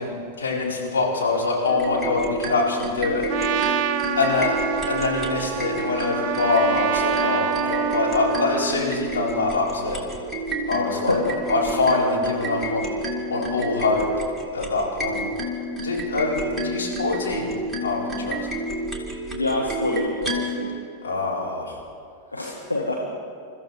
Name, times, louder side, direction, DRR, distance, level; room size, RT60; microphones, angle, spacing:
voice 1, 0.0-3.3 4.1-4.5 4.9-10.0 10.7-11.2 11.5-12.9 13.3-14.1 14.5-15.2 15.8-17.5 17.8-18.4 21.0-21.8, left 3 dB, 65° left, -5 dB, 4.7 m, -24 dB
sound 1, 1.7-20.6, equal, ahead, 2.9 m, -30 dB
Trumpet, 3.3-8.8, right 9 dB, 45° right, 0.6 m, -26 dB
voice 2, 19.3-20.7 22.3-23.1, left 2 dB, 85° left, -4 dB, 1.8 m, -26 dB
28.5 x 14.5 x 3.5 m, 2.5 s
figure-of-eight pair, 90°, 0 cm